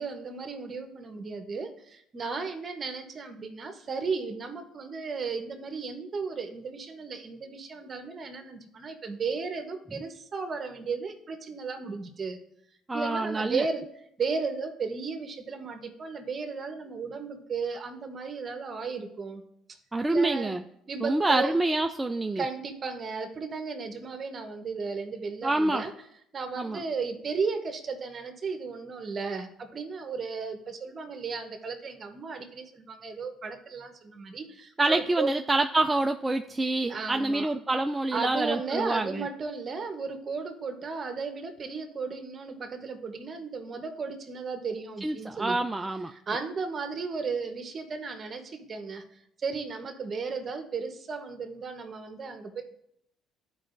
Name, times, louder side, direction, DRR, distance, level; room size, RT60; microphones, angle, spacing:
voice 1, 0.0-12.4 12.9-13.8 14.2-19.4 19.7-19.8 20.1-20.6 20.9-21.6 22.4-25.9 26.3-35.3 36.9-37.5 38.1-45.6 46.1-49.0 49.4-52.6, right 4 dB, 35° right, 6 dB, 1.1 m, -35 dB
voice 2, 12.9-13.7 19.9-20.6 21.0-22.4 25.4-25.8 26.6-26.8 34.8-39.3 45.0-46.1, right 2 dB, 15° right, 6 dB, 0.3 m, -27 dB
12.5 x 4.8 x 2.6 m, 0.74 s
cardioid pair, 105°, 0 cm